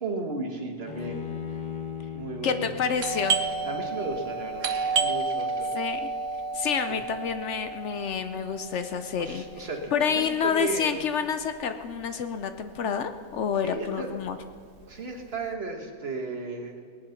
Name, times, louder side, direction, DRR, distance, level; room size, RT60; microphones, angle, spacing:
voice 1, 0.0-1.6 2.1-2.7 3.6-5.7 6.9-7.0 9.2-11.0 13.6-14.1 14.9-16.8, right 3 dB, 35° right, 2 dB, 1.7 m, -34 dB
Bowed string instrument, 0.9-4.2, left 8 dB, 60° left, 1.6 m, -38 dB
voice 2, 2.4-3.4 5.7-6.1 6.5-9.4 9.9-14.4, left 7 dB, 75° left, 9 dB, 0.6 m, -28 dB
Doorbell, 3.0-12.4 12.6-12.7 13.3-13.7 14.0-15.4, right 4 dB, 55° right, 1.0 m, -31 dB
19.0 x 9.9 x 5.8 m, 2.3 s
omnidirectional pair, 1.9 m